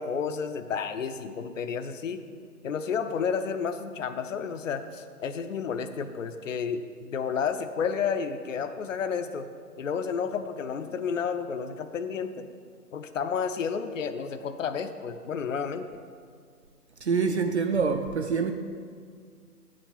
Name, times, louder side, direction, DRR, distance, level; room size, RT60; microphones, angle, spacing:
voice 1, 0.0-2.2 2.6-9.5 9.8-12.5 12.9-16.0, left 6 dB, 55° left, 0.7 m, -31 dB
voice 2, 17.0-18.5, right 5 dB, 45° right, 0.6 m, -25 dB
8.8 x 7.6 x 7.3 m
figure-of-eight pair, 145°, 46 cm